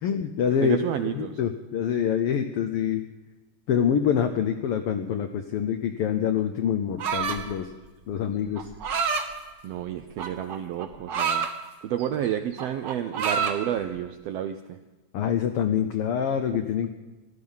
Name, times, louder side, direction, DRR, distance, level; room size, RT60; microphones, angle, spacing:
voice 1, 0.0-0.8 1.0-3.0 3.7-7.7 8.1-8.7 15.1-16.9, left 8 dB, 85° left, 7 dB, 1.2 m, -26 dB
voice 2, 0.6-1.4 9.6-11.5 11.8-14.8 16.5-16.6, right 10 dB, 80° right, 8 dB, 1.4 m, -30 dB
sound 1, 7.0-7.5 8.6-9.3 10.2-11.5 12.0-12.3 12.5-13.6, right 6 dB, 60° right, 1.1 m, -27 dB
17.0 x 12.0 x 5.5 m, 1.2 s
omnidirectional pair, 3.5 m